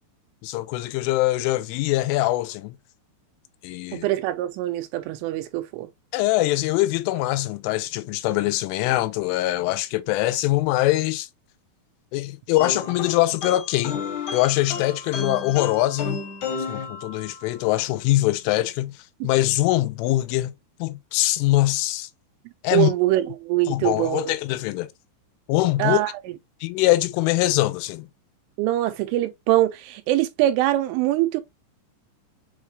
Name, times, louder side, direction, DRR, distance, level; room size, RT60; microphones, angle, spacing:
voice 1, 0.4-2.8 3.6-4.1 6.1-11.3 12.1-14.0 14.3-16.2 16.7-18.9 19.2-20.5 20.8-22.1 22.6-22.9 23.7-24.9 25.5-26.0 26.6-28.1, left 17 dB, 85° left, 3.1 m, -23 dB
voice 2, 3.9-5.9 22.7-24.4 25.8-26.1 28.6-31.4, right 15 dB, 90° right, 3.2 m, -23 dB
sound 1, 12.6-17.6, left 4 dB, 65° left, 1.9 m, -33 dB
7.1 x 2.4 x 3.0 m
omnidirectional pair, 5.6 m